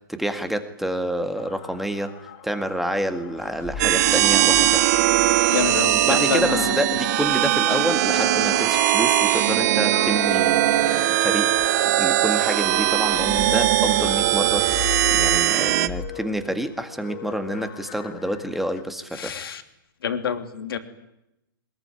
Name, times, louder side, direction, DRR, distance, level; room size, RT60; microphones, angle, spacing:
voice 1, 0.1-2.1 2.4-4.9 6.0-11.5 11.9-19.3, right 1 dB, ahead, 8 dB, 1.9 m, -28 dB
sound 1, 1.4-18.8, left 9 dB, 40° left, 3.7 m, -40 dB
sound 2, 3.4-7.5 10.8-16.1, left 4 dB, 20° left, 3.2 m, -37 dB
sound 3, 3.8-15.9, right 14 dB, 45° right, 1.1 m, -20 dB
voice 2, 5.5-6.7 19.1-19.6 20.0-20.8, left 7 dB, 75° left, 7 dB, 3.1 m, -27 dB
22.5 x 21.0 x 9.9 m, 0.86 s
hypercardioid pair, 145°, 12 cm